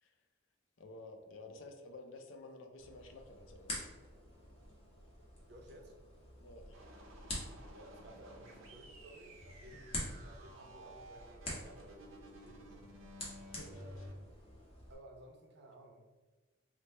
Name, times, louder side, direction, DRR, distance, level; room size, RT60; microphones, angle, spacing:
voice 1, 0.8-3.9 6.4-6.8 13.3-13.9, left 2 dB, 70° left, 4 dB, 0.5 m, -52 dB
sound 1, 2.8-14.9, left 1 dB, 30° left, 0.9 m, -48 dB
voice 2, 5.5-6.0 7.7-12.8 13.7-14.0 14.9-16.1, right 1 dB, 55° right, 2 dB, 0.6 m, -56 dB
sound 2, 6.7-14.1, equal, 90° right, 0.7 m, -54 dB
3.3 x 2.1 x 4.1 m, 1.2 s
head